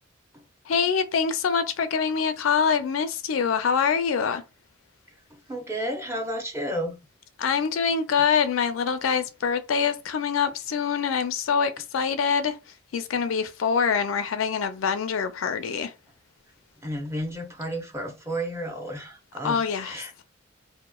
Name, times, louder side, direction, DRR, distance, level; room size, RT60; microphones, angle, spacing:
voice 1, 0.7-4.4 7.4-12.6 12.9-15.9 19.4-20.2, left 6 dB, 85° left, 0.4 m, -25 dB
voice 2, 5.5-7.0 16.8-20.1, equal, 15° right, 0.6 m, -32 dB
2.9 x 2.0 x 2.2 m
head